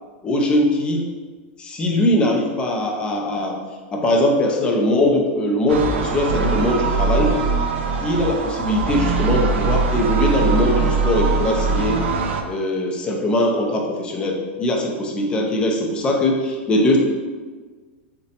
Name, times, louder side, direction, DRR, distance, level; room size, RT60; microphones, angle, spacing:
voice 1, 0.2-1.0 1.6-3.6 3.9-7.4 8.0-12.0 12.5-17.0, left 1 dB, 15° left, 0 dB, 0.4 m, -21 dB
sound 1, 5.7-12.4, right 4 dB, 85° right, 0.4 m, -21 dB
3.8 x 2.2 x 2.7 m, 1.4 s
supercardioid pair, 155°, 6 cm